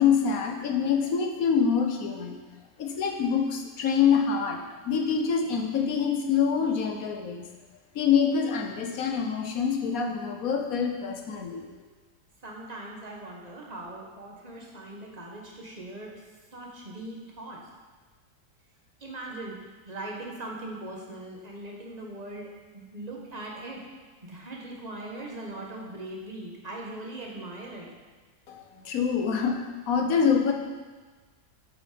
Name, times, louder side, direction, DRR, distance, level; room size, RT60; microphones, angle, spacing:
voice 1, 0.0-2.4 2.8-4.6 4.8-7.5 7.9-11.7 28.5-30.5, left 6 dB, 60° left, 3 dB, 1.4 m, -25 dB
voice 2, 12.4-16.2 16.5-17.6 19.0-23.8 24.3-27.9, right 2 dB, 25° right, -1 dB, 1.5 m, -40 dB
8.0 x 8.0 x 5.2 m, 1.3 s
omnidirectional pair, 1.8 m